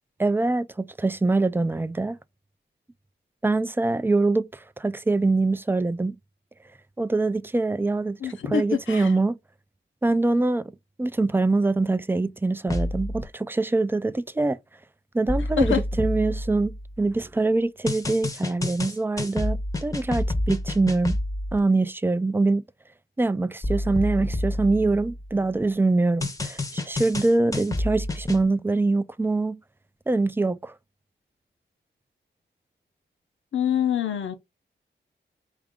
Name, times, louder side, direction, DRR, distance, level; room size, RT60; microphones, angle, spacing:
voice 1, 0.2-2.2 3.4-6.1 7.0-8.2 8.5-9.4 10.0-10.7 11.0-14.6 15.1-21.2 21.5-22.6 23.2-29.6 30.1-30.7, right 3 dB, 10° right, 0.3 m, -24 dB
voice 2, 8.2-9.2 15.6-15.8 33.5-34.4, left 8 dB, 90° left, 0.7 m, -25 dB
sound 1, 12.7-13.2 15.3-17.2 17.9-21.6 23.6-25.5 26.2-28.4, left 1 dB, 15° left, 0.7 m, -29 dB
4.7 x 2.4 x 3.5 m
wide cardioid pair, 85°, 19 cm